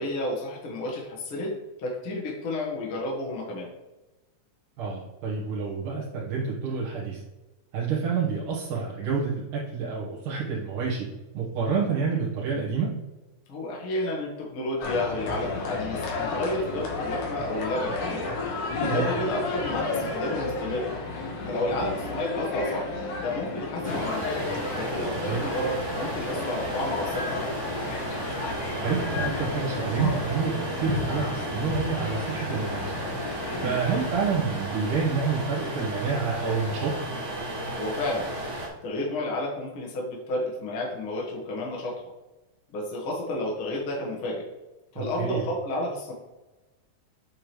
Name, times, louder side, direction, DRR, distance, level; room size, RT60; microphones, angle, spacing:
voice 1, 0.0-1.5 1.8-3.7 13.5-18.2 18.8-20.9 21.4-22.8 23.2-24.4 24.7-27.6 33.6-33.8 37.8-38.3 38.8-42.1 42.7-44.4 44.9-46.1, left 1 dB, 50° left, -4 dB, 2.2 m, -31 dB
voice 2, 4.8-7.2 7.7-11.1 11.3-12.9 18.8-19.1 25.1-25.4 28.8-32.9 33.6-36.9 45.0-45.5, right 5 dB, 85° right, -7 dB, 2.9 m, -28 dB
sound 1, 14.8-34.3, left 3 dB, 75° left, 2.8 m, -32 dB
sound 2, 23.8-38.7, right 1 dB, 45° right, 0.9 m, -34 dB
8.3 x 5.2 x 3.2 m, 1.1 s
omnidirectional pair, 3.6 m